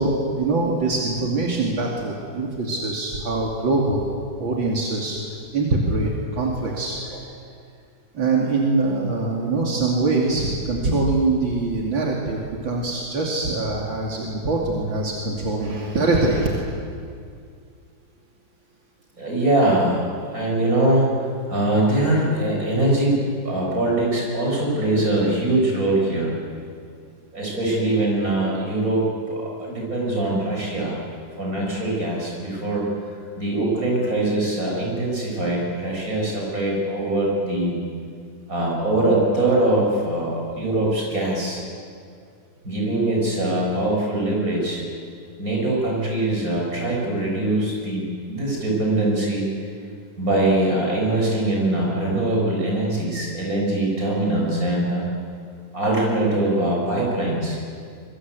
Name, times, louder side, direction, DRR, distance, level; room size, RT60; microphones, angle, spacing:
voice 1, 0.0-4.0 4.4-7.3 8.1-16.5, right 3 dB, 80° right, -2 dB, 3.4 m, -23 dB
voice 2, 19.2-20.1 20.3-21.1 21.5-23.2 23.4-26.4 27.3-31.0 31.4-32.8 33.4-37.7 38.5-41.6 42.6-44.8 45.4-49.5 50.2-55.0 55.7-57.6, right 1 dB, 45° right, -2 dB, 7.8 m, -22 dB
25.5 x 22.5 x 8.3 m, 2.3 s
omnidirectional pair, 2.1 m